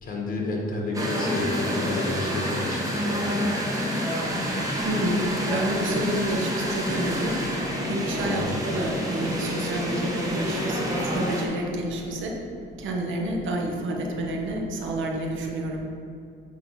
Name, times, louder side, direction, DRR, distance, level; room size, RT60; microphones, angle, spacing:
voice 1, 0.0-3.3 8.2-8.6, left 2 dB, 45° left, 0 dB, 1.7 m, -30 dB
sound 1, 0.9-11.5, equal, 15° right, 1.5 m, -28 dB
voice 2, 4.8-7.4 7.9-12.4 12.8-15.8, right 1 dB, 75° right, 0 dB, 1.1 m, -29 dB
8.5 x 3.2 x 5.7 m, 2.5 s
cardioid pair, 90°, 20 cm